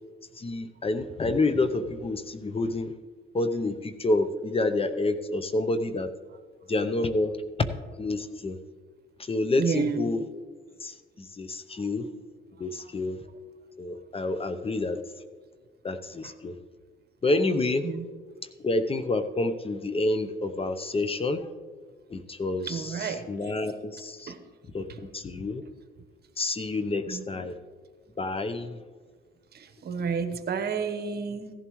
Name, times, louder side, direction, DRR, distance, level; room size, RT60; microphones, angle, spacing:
voice 1, 0.4-2.9 3.3-6.1 6.7-7.3 8.0-8.6 9.2-10.2 10.8-12.1 12.6-13.2 13.8-15.0 15.8-16.5 17.2-17.8 18.6-21.5 22.1-24.3 24.7-25.6 26.4-27.5 28.2-28.8, left 2 dB, 30° left, 10 dB, 0.7 m, -28 dB
voice 2, 9.6-10.1 16.2-16.3 17.8-18.0 22.7-23.2 24.3-24.4 27.1-27.2 29.5-31.5, right 5 dB, 55° right, 8 dB, 1.1 m, -30 dB
16.0 x 11.0 x 3.1 m, 1.5 s
cardioid pair, 90°, 20 cm